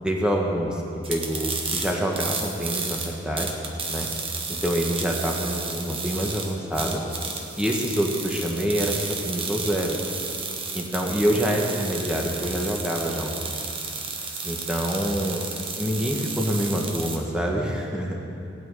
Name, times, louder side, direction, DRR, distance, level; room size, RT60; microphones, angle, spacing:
voice 1, 0.0-0.8 1.1-3.5 3.9-4.1 4.5-7.0 7.5-10.0 10.7-13.5 14.4-15.4 15.8-18.2, equal, 5° right, -1 dB, 1.6 m, -26 dB
sound 1, 1.0-17.2, right 4 dB, 30° right, 1.2 m, -32 dB
16.5 x 6.2 x 9.1 m, 2.8 s
head